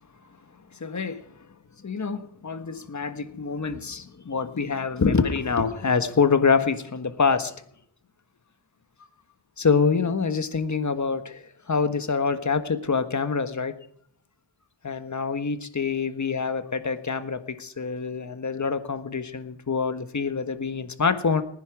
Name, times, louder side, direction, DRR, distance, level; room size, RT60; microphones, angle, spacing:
voice 1, 0.8-1.2 1.8-7.5 9.6-13.7 14.8-21.4, left 5 dB, 40° left, 9 dB, 1.4 m, -25 dB
18.5 x 10.5 x 6.0 m, 0.66 s
wide cardioid pair, 95°, 47 cm